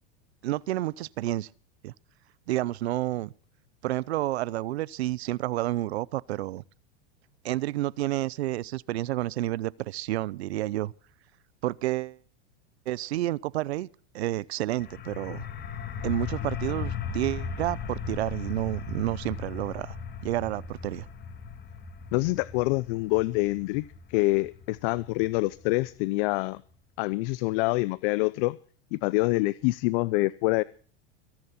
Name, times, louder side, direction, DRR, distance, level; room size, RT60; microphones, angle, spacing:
voice 1, 0.4-1.5 1.8-1.9 2.5-3.3 3.8-6.6 7.4-10.9 11.6-12.2 12.9-13.9 14.1-15.5 16.0-20.0 20.2-21.1, right 15 dB, 85° right, 0.8 m, -30 dB
sound 1, 14.8-26.3, left 6 dB, 30° left, 2.5 m, -37 dB
voice 2, 22.1-26.6 27.0-28.6 28.9-30.6, left 23 dB, 60° left, 0.7 m, -26 dB
23.0 x 10.5 x 4.3 m
supercardioid pair, 120°, 31 cm